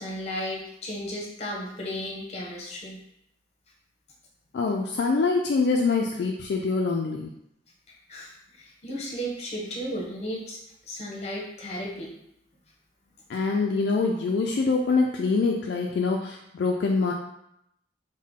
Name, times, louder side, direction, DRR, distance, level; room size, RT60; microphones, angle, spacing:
voice 1, 0.0-3.0 8.1-10.6 10.9-12.1, equal, 35° left, -2 dB, 0.8 m, -34 dB
voice 2, 4.5-7.3 13.3-17.1, left 4 dB, 65° left, 0 dB, 0.3 m, -25 dB
3.6 x 2.1 x 3.6 m, 0.78 s
head